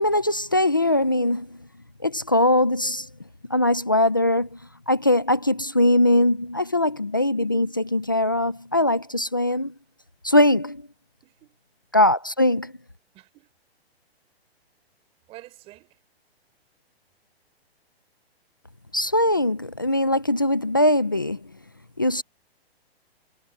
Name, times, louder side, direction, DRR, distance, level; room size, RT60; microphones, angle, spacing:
voice 1, 0.0-1.5 2.0-3.1 3.5-4.6 4.9-9.7 10.2-10.8 11.9-12.7 18.9-21.4 22.0-22.2, left 1 dB, 20° left, 0.3 m, -21 dB
voice 2, 11.2-11.6 13.1-13.5 15.3-16.0, right 17 dB, 20° right, 4.7 m, -48 dB
hypercardioid pair, 165°, 32 cm